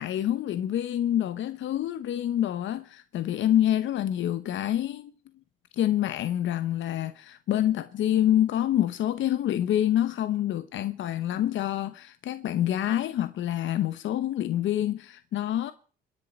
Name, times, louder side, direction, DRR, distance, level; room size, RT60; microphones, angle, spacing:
voice 1, 0.0-5.1 5.7-15.7, left 12 dB, 75° left, 0.9 m, -27 dB
26.5 x 10.5 x 4.4 m
cardioid pair, 90°, 20 cm